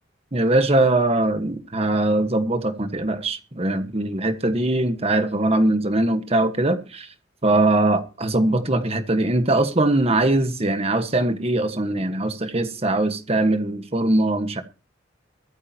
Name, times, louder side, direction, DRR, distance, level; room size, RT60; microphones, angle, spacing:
voice 1, 0.3-7.1 7.4-14.6, right 2 dB, 30° right, 1.5 m, -21 dB
23.5 x 9.8 x 2.9 m
head